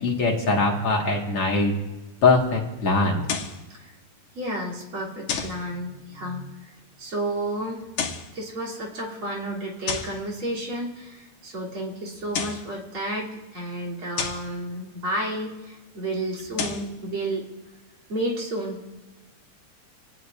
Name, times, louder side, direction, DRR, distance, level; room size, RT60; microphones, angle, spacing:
voice 1, 0.0-1.7 2.2-3.2, left 3 dB, 55° left, -1 dB, 2.5 m, -22 dB
sound 1, 3.2-3.6 5.3-5.6 7.8-8.3 9.9-10.2 12.1-12.7 14.2-14.5 16.4-16.9, left 6 dB, 85° left, 2.7 m, -30 dB
voice 2, 4.3-7.8 8.3-17.4 18.1-18.9, right 1 dB, 45° right, -2 dB, 3.8 m, -31 dB
28.0 x 18.5 x 2.5 m, 1.2 s
omnidirectional pair, 3.4 m